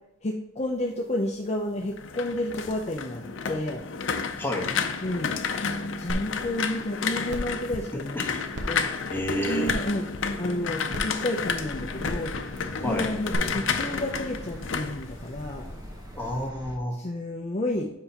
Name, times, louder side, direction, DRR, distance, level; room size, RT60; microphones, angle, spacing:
voice 1, 0.2-3.8 5.0-5.4 6.0-8.2 8.7-8.9 9.5-10.1 10.4-12.3 12.8-15.7 16.9-17.9, left 1 dB, 35° left, 1 dB, 0.5 m, -31 dB
sound 1, 1.8-15.8 16.1-16.5, left 5 dB, 80° left, 0.6 m, -31 dB
voice 2, 4.4-4.7 8.1-8.3 9.1-9.7 12.8-13.1 16.1-17.0, equal, 10° left, -1 dB, 1.2 m, -29 dB
sound 2, 6.1-6.2 6.7-6.8 7.3-7.5 8.5-8.6 9.6-9.9 10.9-11.0 12.0-12.3 13.3-13.4, right 1 dB, 65° right, 0.9 m, -33 dB
sound 3, 11.4-16.8, equal, 20° right, 1.0 m, -42 dB
7.8 x 5.4 x 2.9 m, 0.84 s
head